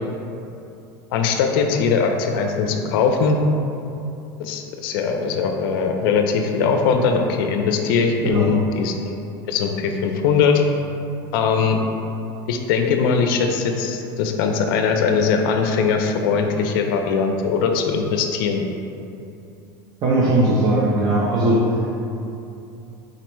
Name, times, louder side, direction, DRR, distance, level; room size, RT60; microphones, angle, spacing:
voice 1, 1.1-3.4 4.4-9.2 9.5-10.6 11.3-11.8 12.5-18.6, left 5 dB, 75° left, 4 dB, 0.4 m, -20 dB
voice 2, 8.2-8.5 20.0-21.6, right 1 dB, 35° right, -6 dB, 0.6 m, -18 dB
3.9 x 2.1 x 4.4 m, 2.7 s
supercardioid pair, 140°, 12 cm